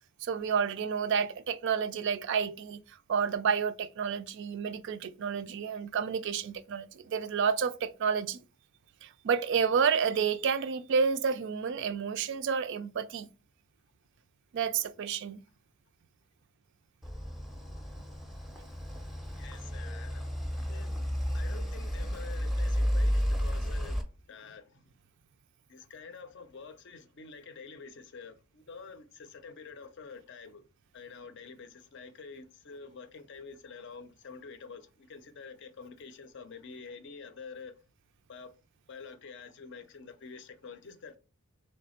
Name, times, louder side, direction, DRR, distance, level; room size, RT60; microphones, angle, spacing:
voice 1, 0.2-2.8 3.1-8.4 9.0-13.3 14.5-15.4, right 6 dB, 55° right, 0.3 m, -30 dB
sound 1, 17.0-24.0, equal, ahead, 0.5 m, -32 dB
voice 2, 19.4-20.3 20.7-21.0 21.3-24.8 25.7-30.6 30.9-37.8 38.3-38.5 38.9-41.2, left 5 dB, 55° left, 0.5 m, -48 dB
3.3 x 3.2 x 4.1 m
head